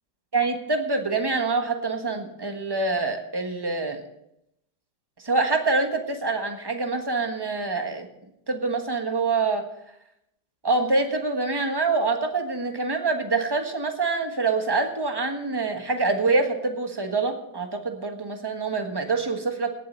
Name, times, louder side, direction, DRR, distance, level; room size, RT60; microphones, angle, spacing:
voice 1, 0.3-4.0 5.2-8.1 8.5-9.7 10.6-19.7, right 3 dB, 15° right, 5 dB, 1.1 m, -25 dB
18.0 x 7.6 x 5.3 m, 0.80 s
omnidirectional pair, 2.0 m